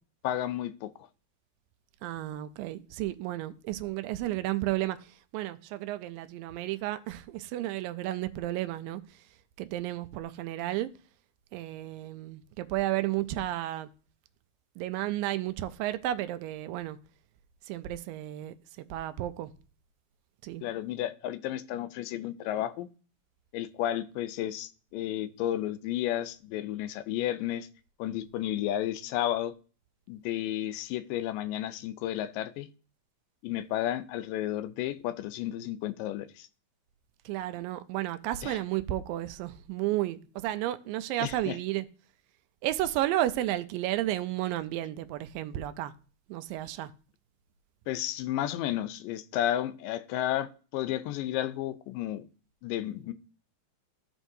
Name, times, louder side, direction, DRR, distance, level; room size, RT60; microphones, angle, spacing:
voice 1, 0.2-0.9 20.6-22.9 23.5-27.7 28.0-29.5 30.1-32.7 33.4-36.5 38.4-38.6 41.2-41.6 47.9-52.2 52.6-53.1, left 12 dB, 85° left, 2.2 m, -32 dB
voice 2, 2.0-5.0 5.3-9.0 9.6-10.9 11.5-13.9 14.8-17.0 17.7-19.5 20.4-20.6 37.3-41.9 42.6-45.9 46.3-46.9, right 14 dB, 90° right, 2.3 m, -32 dB
14.0 x 6.0 x 2.7 m
omnidirectional pair, 3.9 m